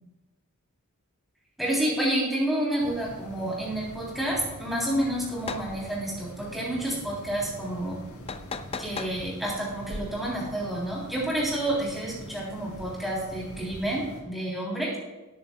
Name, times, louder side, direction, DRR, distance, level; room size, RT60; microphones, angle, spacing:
voice 1, 1.6-8.0 8.8-14.9, right 1 dB, ahead, -6 dB, 3.1 m, -29 dB
sound 1, 2.8-14.2, equal, 75° left, 3.5 m, -43 dB
sound 2, 5.4-5.7 8.3-9.2, left 5 dB, 25° left, 0.5 m, -35 dB
19.0 x 9.3 x 2.3 m, 1.1 s
head